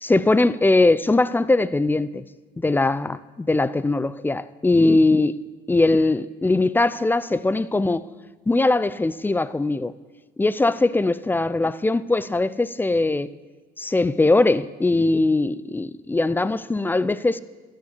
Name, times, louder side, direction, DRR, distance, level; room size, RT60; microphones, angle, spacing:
voice 1, 0.0-2.2 2.6-5.4 5.7-8.1 8.5-9.9 10.4-13.3 13.8-17.4, left 2 dB, 10° left, 0.4 m, -20 dB
13.5 x 9.7 x 8.2 m
cardioid pair, 110°, 17 cm